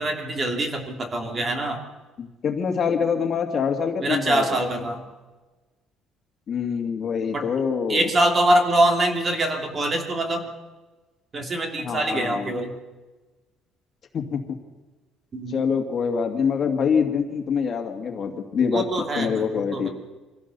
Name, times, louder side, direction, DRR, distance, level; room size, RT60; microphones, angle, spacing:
voice 1, 0.0-1.8 4.0-5.1 7.3-7.5 7.9-10.4 11.3-12.8 15.3-15.7 18.7-19.9, right 1 dB, 25° right, 4 dB, 2.8 m, -24 dB
voice 2, 2.2-4.6 6.5-8.1 11.8-12.5 14.1-14.6 15.5-18.9 19.2-19.9, left 6 dB, 35° left, 4 dB, 2.4 m, -25 dB
25.0 x 16.5 x 7.0 m, 1.2 s
cardioid pair, 165°, 0 cm